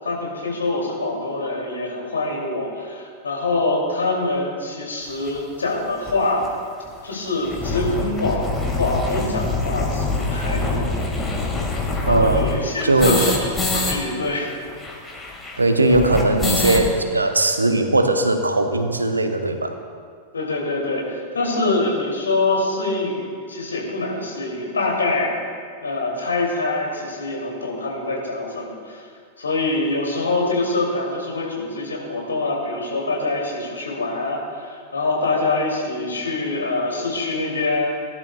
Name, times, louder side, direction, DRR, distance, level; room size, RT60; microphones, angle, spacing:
voice 1, 0.0-6.5 7.0-8.5 8.8-11.0 12.0-14.5 20.3-25.3 25.8-29.0 29.4-37.9, left 2 dB, 75° left, -1 dB, 2.4 m, -25 dB
sound 1, 5.3-5.4 6.1-6.2 6.4-6.5 6.8-6.9 7.3-14.0 14.2-14.3 14.5-16.9, left 3 dB, 15° left, 1.7 m, -25 dB
voice 2, 12.1-13.4 15.6-19.8, right 2 dB, 80° right, 7 dB, 0.8 m, -19 dB
17.5 x 11.0 x 2.2 m, 2.1 s
figure-of-eight pair, 90°, 0 cm